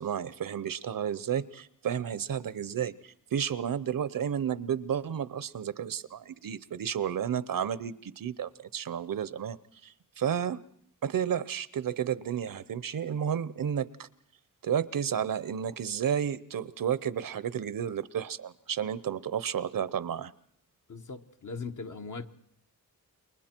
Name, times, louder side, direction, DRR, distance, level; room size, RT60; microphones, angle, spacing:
voice 1, 0.0-9.6 9.8-10.6 11.0-14.1 14.6-20.3, right 8 dB, 75° right, 0.8 m, -32 dB
voice 2, 20.9-22.3, left 4 dB, 65° left, 1.2 m, -39 dB
29.0 x 22.5 x 4.5 m
wide cardioid pair, 100°, 34 cm